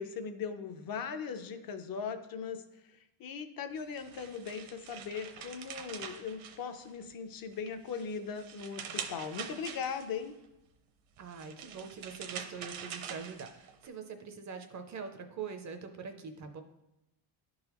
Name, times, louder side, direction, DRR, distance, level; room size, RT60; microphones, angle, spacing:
voice 1, 0.0-2.6 2.9-10.3, left 6 dB, 45° left, 9 dB, 0.6 m, -39 dB
sound 1, 3.8-7.1 7.5-10.3 11.2-13.9, right 7 dB, 70° right, 0.8 m, -44 dB
voice 2, 11.2-16.6, right 6 dB, 35° right, 7 dB, 0.5 m, -43 dB
11.0 x 3.9 x 2.9 m, 0.91 s
cardioid pair, 150°, 49 cm